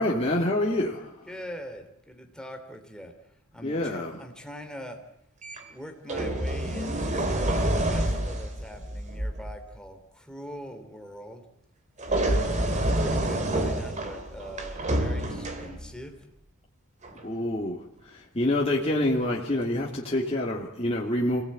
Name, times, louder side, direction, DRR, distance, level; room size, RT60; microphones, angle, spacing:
voice 1, 0.0-1.3 3.6-4.2 17.2-21.4, left 1 dB, 30° left, -3 dB, 2.8 m, -27 dB
voice 2, 1.3-3.1 3.5-5.0 5.7-11.4 12.4-16.1, equal, 5° left, 4 dB, 3.0 m, -42 dB
sound 1, 5.4-5.6 6.1-9.6 12.0-16.0 17.0-17.2, right 1 dB, 35° right, 2.6 m, -28 dB
27.0 x 17.5 x 8.8 m, 0.82 s
head